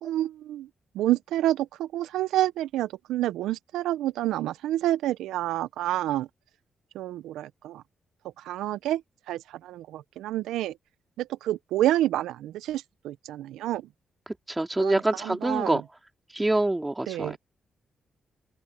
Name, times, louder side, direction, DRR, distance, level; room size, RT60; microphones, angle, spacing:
voice 1, 0.0-0.7 0.9-6.3 6.9-7.8 8.4-9.0 9.3-10.7 11.2-13.8 14.8-15.8 17.1-17.4, right 14 dB, 80° right, 1.0 m, -28 dB
voice 2, 14.5-15.8 16.3-17.4, right 2 dB, 20° right, 3.3 m, -25 dB
hypercardioid pair, 45°, 0 cm